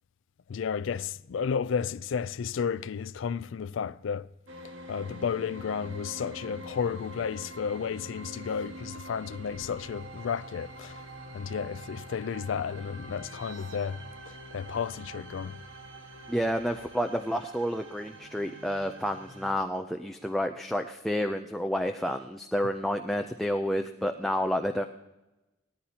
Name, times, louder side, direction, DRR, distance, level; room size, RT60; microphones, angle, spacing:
voice 1, 0.5-4.3 4.9-11.0 11.3-15.6, left 6 dB, 65° left, 0.4 m, -32 dB
sound 1, 4.5-19.5, right 1 dB, 65° right, 1.6 m, -45 dB
voice 2, 16.3-24.8, equal, ahead, 0.4 m, -30 dB
18.5 x 14.0 x 2.8 m
head